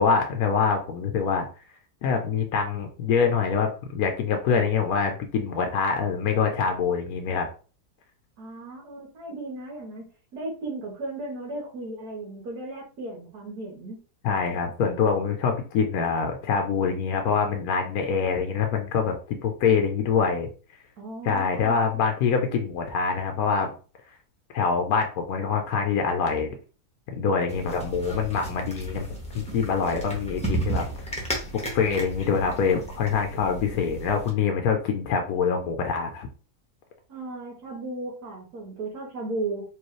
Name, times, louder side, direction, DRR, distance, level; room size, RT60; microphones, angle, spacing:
voice 1, 0.0-1.5 2.0-7.5 14.2-20.5 21.2-23.7 24.5-26.5 27.1-29.1 29.3-31.2 31.5-36.3, left 6 dB, 70° left, 4 dB, 1.1 m, -25 dB
voice 2, 8.4-10.0 10.3-14.0 21.0-21.8 37.1-39.6, right 2 dB, 75° right, -3 dB, 1.8 m, -35 dB
sound 1, 27.5-34.3, right 2 dB, 5° left, 0.8 m, -34 dB
4.6 x 2.7 x 3.1 m, 0.37 s
omnidirectional pair, 1.7 m